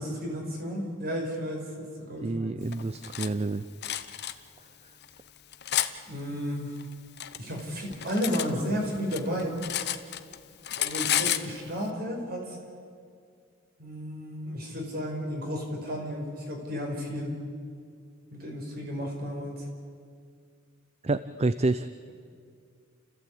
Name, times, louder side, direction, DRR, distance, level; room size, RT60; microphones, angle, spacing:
voice 1, 0.0-2.5 6.1-6.7 7.4-9.6 10.7-12.6 13.8-17.3 18.3-19.7, equal, 50° right, 1 dB, 5.2 m, -33 dB
voice 2, 2.2-3.6 21.0-21.9, right 2 dB, 30° right, 13 dB, 0.5 m, -28 dB
Cutlery silverware, 2.7-3.3 3.8-4.3 5.0-5.9 6.8-8.5 8.8-10.4 10.6-11.5, left 12 dB, 55° left, 0.8 m, -30 dB
29.5 x 15.0 x 8.6 m, 2.2 s
head